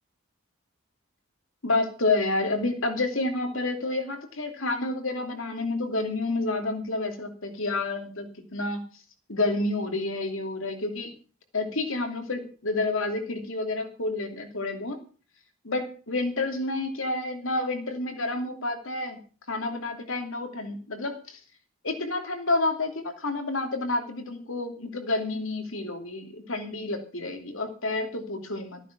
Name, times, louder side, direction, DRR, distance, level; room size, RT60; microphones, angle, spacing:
voice 1, 1.6-8.8 9.3-11.1 11.5-15.0 15.6-19.2 19.5-21.4 21.8-28.8, left 2 dB, 60° left, 5 dB, 2.9 m, -29 dB
15.0 x 9.8 x 6.0 m, 0.38 s
head